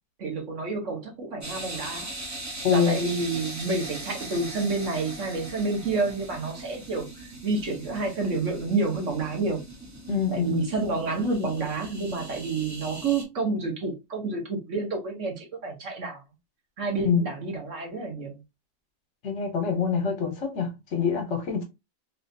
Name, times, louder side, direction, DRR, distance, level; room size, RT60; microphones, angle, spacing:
voice 1, 0.2-2.1 2.7-9.6 10.3-16.2 16.8-18.4, right 3 dB, 65° right, 1.3 m, -29 dB
sound 1, 1.4-13.2, right 1 dB, 25° right, 0.4 m, -40 dB
voice 2, 2.6-3.0 10.1-10.7 17.0-17.3 19.2-21.6, left 6 dB, 60° left, 1.1 m, -25 dB
3.3 x 2.4 x 2.6 m
omnidirectional pair, 1.4 m